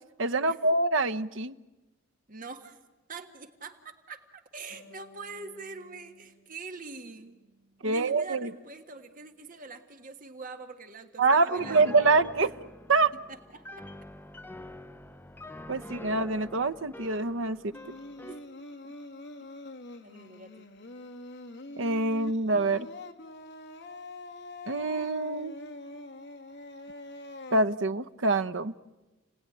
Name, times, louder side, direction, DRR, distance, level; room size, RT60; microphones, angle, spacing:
voice 1, 0.2-1.5 7.8-8.5 11.2-12.5 12.9-13.1 15.7-17.7 21.8-22.9 24.7-25.5 27.5-28.7, right 3 dB, 70° right, 11 dB, 0.9 m, -25 dB
voice 2, 2.3-2.8 3.1-7.4 7.8-12.1 12.4-12.5 13.3-13.8 18.3-18.4 18.8-18.9 20.0-20.7, right 4 dB, 40° right, 6 dB, 1.6 m, -44 dB
Harp, 4.7-8.1 8.4-9.5, left 1 dB, 75° left, 4.6 m, -60 dB
Piano, 11.6-18.5, left 1 dB, 10° left, 1.0 m, -45 dB
Singing, 17.7-27.6, left 2 dB, 60° left, 2.0 m, -44 dB
30.0 x 18.5 x 10.0 m, 1.1 s
head